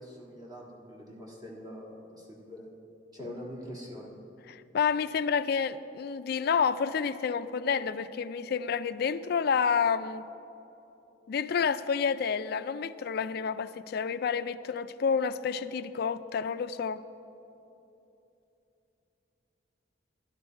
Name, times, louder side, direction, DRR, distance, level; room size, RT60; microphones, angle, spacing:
voice 1, 0.0-2.7 3.1-4.1, equal, 20° right, -3 dB, 1.6 m, -44 dB
voice 2, 4.5-10.3 11.3-17.0, left 6 dB, 55° left, 13 dB, 0.4 m, -29 dB
11.5 x 11.0 x 4.5 m, 2.9 s
head